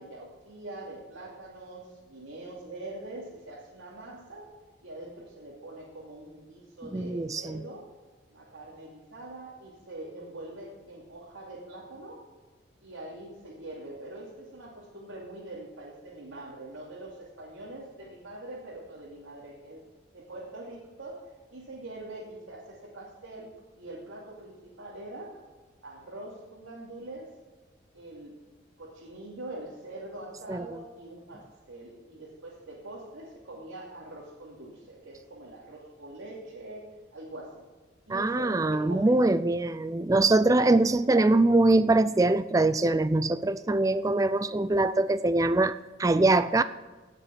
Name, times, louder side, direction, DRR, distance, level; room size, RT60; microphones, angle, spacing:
voice 1, 0.0-4.5 4.8-7.9 8.3-12.2 12.8-19.9 20.1-25.4 25.8-27.3 27.9-28.4 28.8-37.6 38.1-39.3, right 2 dB, 85° right, 2.7 m, -43 dB
voice 2, 6.9-7.6 30.5-30.8 38.1-46.6, right 2 dB, 15° right, 0.3 m, -23 dB
17.5 x 6.8 x 5.9 m
head